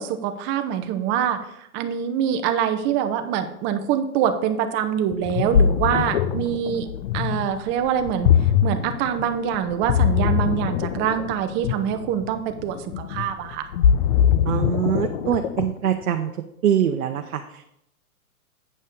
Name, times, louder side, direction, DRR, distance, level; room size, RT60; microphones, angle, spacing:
voice 1, 0.0-6.9 7.1-13.7, right 9 dB, 25° right, 8 dB, 0.8 m, -25 dB
Ocean, 5.1-15.9, left 8 dB, 40° left, 0.6 m, -22 dB
voice 2, 14.4-16.3 16.6-17.6, right 9 dB, 65° right, 5 dB, 0.9 m, -23 dB
8.5 x 5.4 x 5.4 m, 0.76 s
hypercardioid pair, 125°, 45 cm